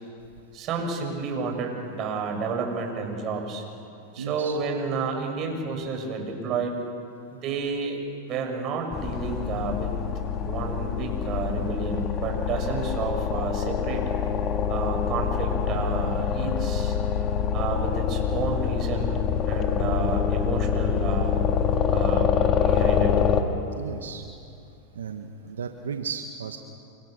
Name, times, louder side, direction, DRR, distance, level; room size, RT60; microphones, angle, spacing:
voice 1, 0.5-3.6 4.1-6.7 7.4-8.0 8.3-9.9 10.4-14.0 14.7-16.9 17.5-19.2 19.4-21.4 21.9-22.3 22.6-23.1, right 4 dB, 40° right, 2 dB, 7.1 m, -30 dB
voice 2, 4.2-4.6 23.7-24.2 24.9-26.6, right 6 dB, 90° right, 5 dB, 1.5 m, -35 dB
sound 1, 8.9-23.4, left 7 dB, 35° left, 2.5 m, -25 dB
29.0 x 26.5 x 6.8 m, 2.6 s
hypercardioid pair, 110°, 0 cm